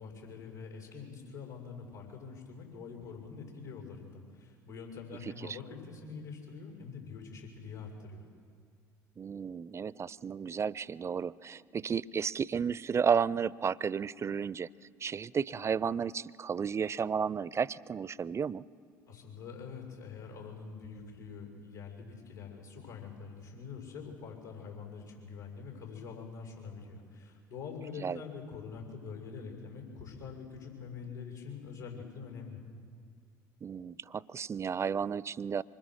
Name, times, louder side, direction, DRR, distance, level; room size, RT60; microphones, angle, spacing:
voice 1, 0.0-8.2 19.1-32.6, left 5 dB, 85° left, 1 dB, 6.8 m, -45 dB
voice 2, 9.2-14.7 15.0-18.6 28.0-28.2 33.6-35.6, right 6 dB, 30° right, 21 dB, 0.5 m, -33 dB
25.5 x 25.5 x 6.4 m, 2.2 s
figure-of-eight pair, 60°, 10 cm